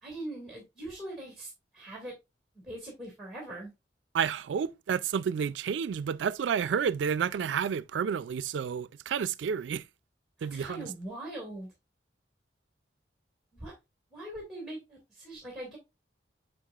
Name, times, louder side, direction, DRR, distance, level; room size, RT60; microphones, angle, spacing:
voice 1, 0.0-2.1 2.6-3.7 10.4-11.7 13.5-13.7 14.1-15.8, right 1 dB, ahead, 2.2 m, -41 dB
voice 2, 4.1-9.8 10.4-10.9, right 7 dB, 85° right, 0.3 m, -30 dB
6.5 x 6.3 x 2.3 m
head